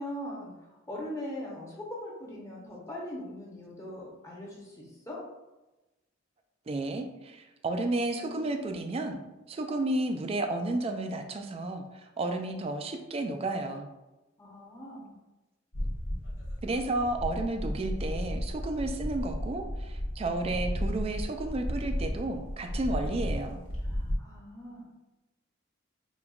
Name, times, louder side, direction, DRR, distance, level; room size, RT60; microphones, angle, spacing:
voice 1, 0.0-5.2 14.4-15.1 23.8-24.9, left 1 dB, 15° left, -4 dB, 0.8 m, -41 dB
voice 2, 6.7-9.2 9.5-13.9 16.6-23.6, right 2 dB, 30° right, 6 dB, 0.3 m, -32 dB
sound 1, 15.7-24.2, equal, 85° left, 0.9 m, -34 dB
5.1 x 2.3 x 2.3 m, 1.0 s
head